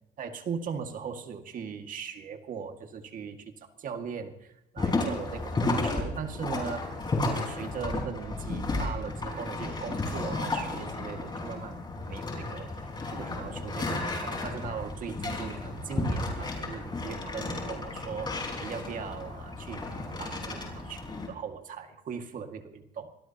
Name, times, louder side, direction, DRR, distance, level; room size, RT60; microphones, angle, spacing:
voice 1, 0.2-6.9 7.2-23.2, right 6 dB, 50° right, 6 dB, 2.2 m, -39 dB
sound 1, 4.8-21.3, left 2 dB, 25° left, 5.0 m, -33 dB
25.5 x 18.0 x 3.0 m, 0.85 s
cardioid pair, 110°, 17 cm